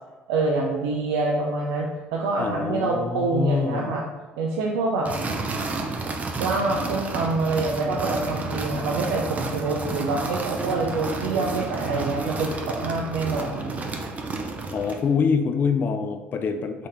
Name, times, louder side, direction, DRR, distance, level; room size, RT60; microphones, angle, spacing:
voice 1, 0.3-4.0 4.4-5.1 6.4-13.8, right 3 dB, 85° right, -1 dB, 0.4 m, -26 dB
voice 2, 2.4-3.9 14.7-16.9, left 6 dB, 45° left, 7 dB, 0.4 m, -25 dB
sound 1, 5.0-15.1, right 3 dB, 35° right, 0.6 m, -31 dB
3.7 x 2.8 x 3.5 m, 1.3 s
supercardioid pair, 75°, 4 cm